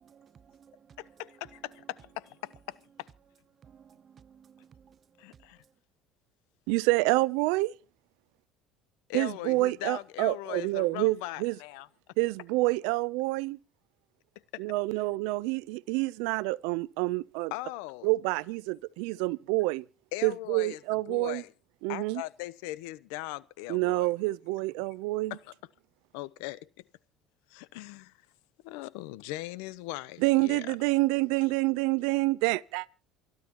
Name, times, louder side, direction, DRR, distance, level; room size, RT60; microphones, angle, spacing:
voice 1, 0.1-1.0 3.6-5.0, right 7 dB, 40° right, 0.9 m, -57 dB
voice 2, 1.0-3.1 5.2-5.6 9.1-11.9 14.5-14.6 17.5-18.1 20.1-20.8 21.1-21.5 21.9-24.1 25.3-25.5 26.1-26.8 27.5-28.2 28.6-30.7, left 18 dB, 85° left, 0.9 m, -39 dB
voice 3, 6.7-7.7 9.1-11.6 12.2-13.6 14.6-17.5 18.0-19.9 20.2-21.4 21.8-22.2 23.7-25.4 30.2-32.9, right 21 dB, 80° right, 0.6 m, -27 dB
28.5 x 12.0 x 3.0 m
supercardioid pair, 110°, 0 cm